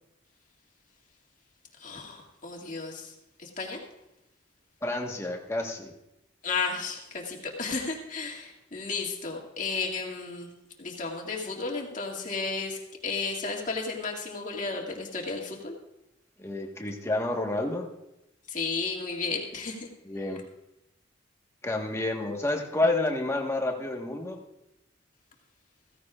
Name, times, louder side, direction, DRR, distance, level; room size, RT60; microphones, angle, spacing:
voice 1, 1.8-3.8 6.4-10.5 10.8-15.8 18.5-19.9, left 4 dB, 40° left, -1 dB, 2.1 m, -33 dB
voice 2, 4.8-5.9 16.4-17.9 20.0-20.4 21.6-24.4, left 2 dB, 15° left, 1 dB, 1.3 m, -29 dB
16.0 x 15.0 x 2.4 m, 0.89 s
head